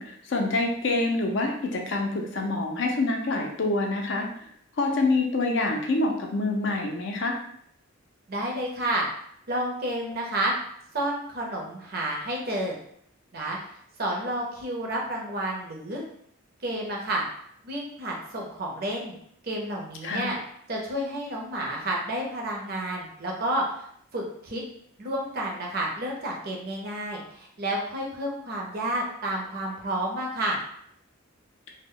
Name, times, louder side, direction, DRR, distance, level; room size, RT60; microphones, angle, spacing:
voice 1, 0.0-4.3 4.8-7.4 20.0-20.3, left 2 dB, 55° left, 2 dB, 0.4 m, -26 dB
voice 2, 8.3-9.1 9.5-10.5 10.9-12.8 13.3-13.6 14.0-16.0 16.6-17.2 17.6-19.1 19.4-20.4 20.7-23.6 24.1-24.6 25.0-30.6, right 1 dB, 45° right, -1 dB, 0.6 m, -30 dB
2.1 x 2.0 x 3.6 m, 0.67 s
head